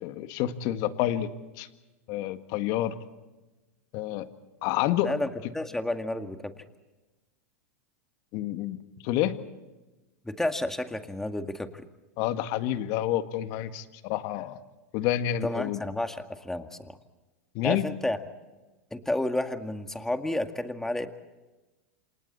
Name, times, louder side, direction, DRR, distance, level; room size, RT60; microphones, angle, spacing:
voice 1, 0.0-1.3 1.6-1.7 2.1-3.0 3.9-4.3 4.6-5.1 8.3-8.8 9.0-9.3 12.2-14.6 14.9-15.8 17.5-17.9, left 12 dB, 55° left, 9 dB, 1.9 m, -28 dB
voice 2, 5.0-6.6 10.2-11.9 15.4-17.0 17.6-18.2 18.9-21.1, left 1 dB, 5° left, 7 dB, 2.0 m, -31 dB
29.0 x 27.0 x 4.3 m, 1.1 s
hypercardioid pair, 105°, 8 cm